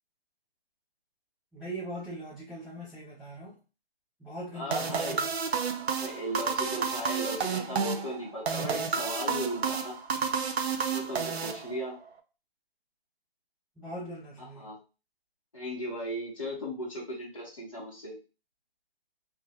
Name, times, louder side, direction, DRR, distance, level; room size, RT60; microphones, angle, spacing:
voice 1, 1.5-3.6 4.2-5.3 13.8-14.7, right 1 dB, ahead, -12 dB, 0.4 m, -41 dB
voice 2, 4.5-5.2 5.9-10.0 10.9-12.0 14.5-14.8 15.5-18.2, equal, 30° left, -5 dB, 1.0 m, -36 dB
sound 1, 4.7-12.1, right 6 dB, 85° right, 0.5 m, -31 dB
2.5 x 2.3 x 2.7 m, 0.32 s
hypercardioid pair, 180°, 31 cm